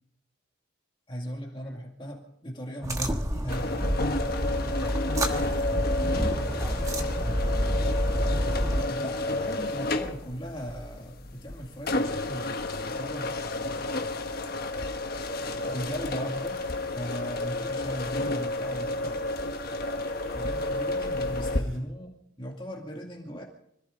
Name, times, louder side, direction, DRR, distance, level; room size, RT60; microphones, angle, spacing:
voice 1, 1.1-3.9 5.9-6.4 8.9-14.1 15.4-19.2 20.3-23.4, equal, 25° left, 0 dB, 2.3 m, -38 dB
sound 1, 2.8-8.8, equal, 15° right, 1.4 m, -28 dB
sound 2, 3.5-21.6, left 2 dB, 50° left, 1.2 m, -31 dB
voice 2, 6.1-7.9, left 1 dB, 10° left, -2 dB, 2.6 m, -47 dB
sound 3, 15.4-21.8, left 4 dB, 90° right, 7.3 m, -52 dB
25.5 x 15.0 x 3.8 m, 0.73 s
head